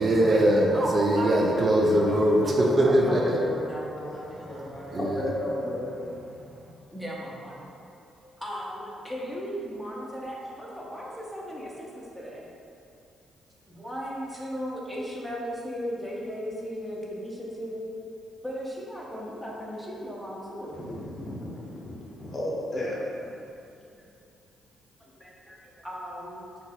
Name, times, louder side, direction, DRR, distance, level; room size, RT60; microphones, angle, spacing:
voice 1, 0.0-3.4 4.3-5.2, right 1 dB, 35° right, -2 dB, 0.4 m, -22 dB
voice 2, 3.0-5.0 6.9-7.7 8.2-12.5 13.7-17.8 18.4-20.9 24.0-24.1 25.0-26.4, equal, ahead, -5 dB, 0.7 m, -37 dB
voice 3, 5.2-5.9 20.8-23.0, left 1 dB, 35° left, -5 dB, 0.8 m, -33 dB
2.9 x 2.4 x 4.1 m, 2.6 s
cardioid pair, 90°, 0 cm